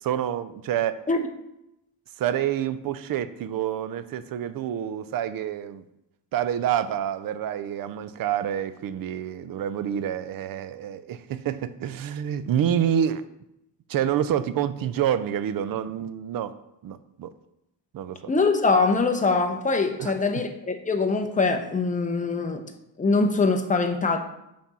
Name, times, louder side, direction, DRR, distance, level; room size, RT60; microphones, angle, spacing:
voice 1, 0.0-1.0 2.2-5.8 6.3-13.3 13.9-16.5 16.8-17.3 17.9-18.2 20.0-20.2, right 10 dB, 50° right, 13 dB, 0.5 m, -27 dB
voice 2, 18.3-22.6 23.0-24.2, left 3 dB, 15° left, 5 dB, 0.7 m, -23 dB
5.7 x 4.3 x 6.1 m, 0.86 s
cardioid pair, 130°, 46 cm